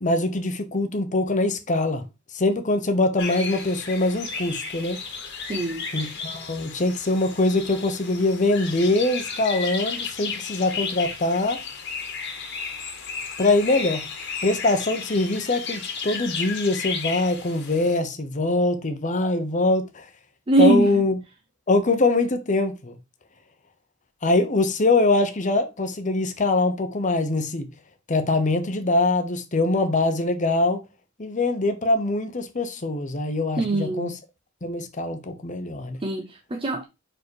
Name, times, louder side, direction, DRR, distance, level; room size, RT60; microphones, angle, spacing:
voice 1, 0.0-2.0 2.3-5.0 5.9-11.6 13.4-14.0 14.4-20.1 20.6-21.1 21.7-23.0 24.2-27.7 28.1-30.8 31.2-34.1 34.6-36.0, left 2 dB, 40° left, 1.0 m, -23 dB
sound 1, 3.2-18.0, left 5 dB, 60° left, 1.6 m, -34 dB
voice 2, 5.5-5.9 20.5-20.9 33.6-34.2 36.0-36.8, right 2 dB, 25° right, 0.6 m, -22 dB
5.1 x 4.8 x 4.6 m
head